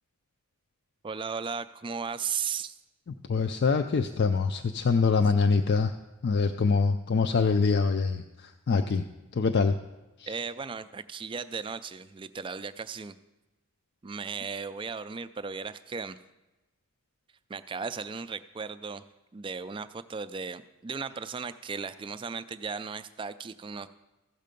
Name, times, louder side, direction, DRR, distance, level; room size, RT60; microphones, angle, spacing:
voice 1, 1.0-2.8 10.3-13.2 14.0-16.2 17.5-19.0 19.3-23.9, right 5 dB, 25° right, 13 dB, 0.3 m, -36 dB
voice 2, 3.3-5.9 6.2-9.0 9.3-9.7 10.2-10.3, left 4 dB, 50° left, 7 dB, 0.4 m, -24 dB
15.0 x 6.6 x 5.2 m, 1.1 s
head